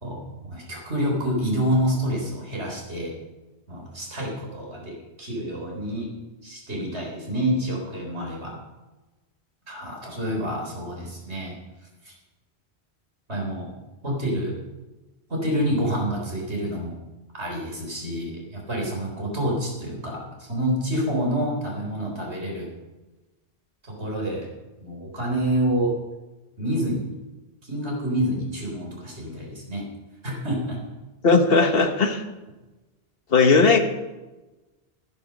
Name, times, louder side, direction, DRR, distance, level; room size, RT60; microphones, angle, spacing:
voice 1, 0.0-3.1 3.7-6.1 6.4-8.6 9.7-11.5 12.0-12.1 13.3-13.7 14.0-14.6 15.3-17.0 17.3-22.7 23.8-24.5 24.8-25.9 26.6-27.1 27.6-29.8 30.2-30.8, equal, 85° right, -1 dB, 4.4 m, -28 dB
voice 2, 31.2-32.2 33.3-33.8, left 4 dB, 60° left, 6 dB, 1.5 m, -17 dB
12.0 x 10.5 x 6.3 m, 1.1 s
omnidirectional pair, 1.1 m